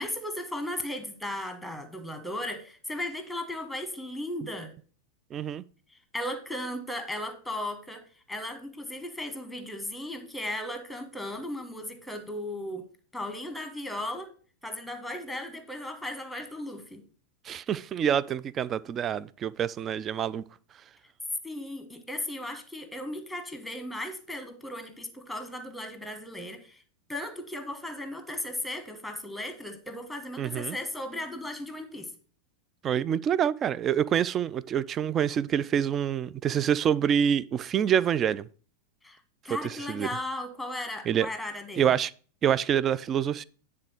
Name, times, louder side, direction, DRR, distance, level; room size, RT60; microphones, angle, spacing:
voice 1, 0.0-4.7 6.1-8.0 8.3-12.9 13.1-14.3 14.6-17.0 21.4-26.8 27.1-32.1 39.0-39.2 39.4-41.9, left 1 dB, ahead, 1.3 m, -36 dB
voice 2, 5.3-5.6 17.5-20.4 30.4-30.8 32.8-38.5 39.5-40.1 41.1-41.3 41.8-42.1 42.4-43.4, right 9 dB, 25° right, 0.3 m, -26 dB
9.7 x 3.6 x 6.1 m
figure-of-eight pair, 90°, 0 cm